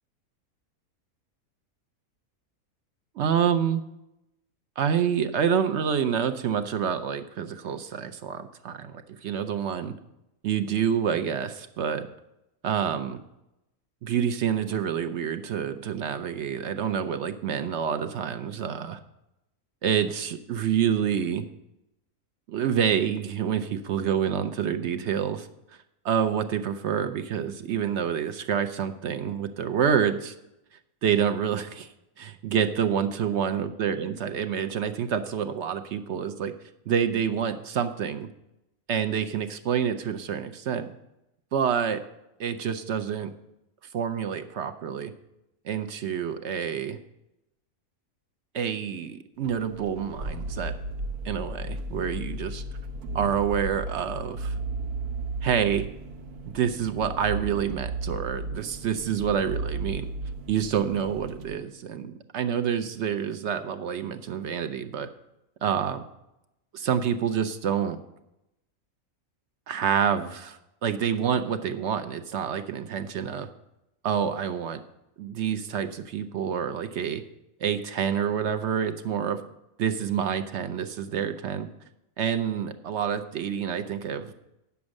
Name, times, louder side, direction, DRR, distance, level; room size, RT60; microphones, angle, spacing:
voice 1, 3.2-3.8 4.8-9.9 10.4-12.1 12.6-13.2 14.0-19.0 19.8-21.4 22.5-25.5 26.0-30.3 31.0-31.9 32.2-36.5 36.9-38.3 38.9-40.9 41.5-42.0 42.4-43.3 43.9-45.1 45.6-47.0 48.5-50.7 51.2-52.6 53.1-54.5 55.4-55.9 56.5-60.1 60.5-65.1 65.6-66.0 66.7-68.0 69.7-73.5 74.0-74.8 75.2-77.2 77.6-79.4 79.8-81.7 82.2-84.3, right 8 dB, 65° right, 9 dB, 0.7 m, -27 dB
sound 1, 49.4-61.5, right 2 dB, 85° right, 1.3 m, -35 dB
9.6 x 7.0 x 6.3 m, 0.89 s
omnidirectional pair, 1.6 m